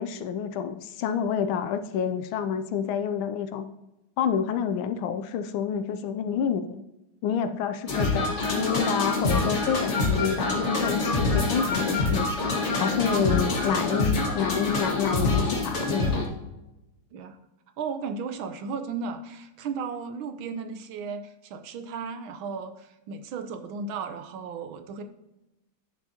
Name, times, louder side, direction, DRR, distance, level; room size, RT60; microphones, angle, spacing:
voice 1, 0.0-3.7 4.2-6.8 7.2-12.3 12.8-16.2, left 7 dB, 75° left, 10 dB, 1.3 m, -28 dB
sound 1, 7.9-16.3, left 3 dB, 35° left, 1.5 m, -26 dB
voice 2, 17.8-25.0, right 5 dB, 75° right, 8 dB, 1.5 m, -35 dB
10.0 x 7.0 x 2.8 m, 0.95 s
omnidirectional pair, 2.4 m